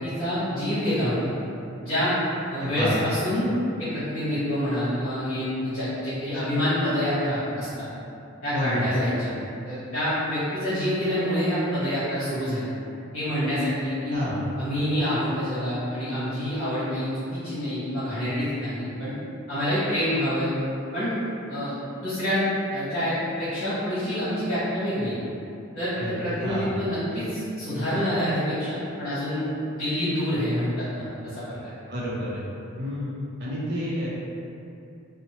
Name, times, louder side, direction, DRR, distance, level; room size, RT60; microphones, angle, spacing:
voice 1, 0.0-1.3 1.8-2.2 2.5-3.5 3.8-7.8 8.4-9.3 9.6-12.7 13.1-14.2 14.6-19.1 19.5-20.6 20.9-21.1 21.5-21.7 22.0-25.2 25.7-29.5 29.7-31.0 31.3-31.6, equal, 50° left, -14 dB, 1.0 m, -27 dB
voice 2, 2.6-2.9 8.5-8.9 14.1-14.5 26.0-26.1 26.4-26.8 31.9-32.4 32.8-33.1 33.4-34.1, equal, 50° right, -7 dB, 0.5 m, -29 dB
2.8 x 2.0 x 2.8 m, 2.7 s
head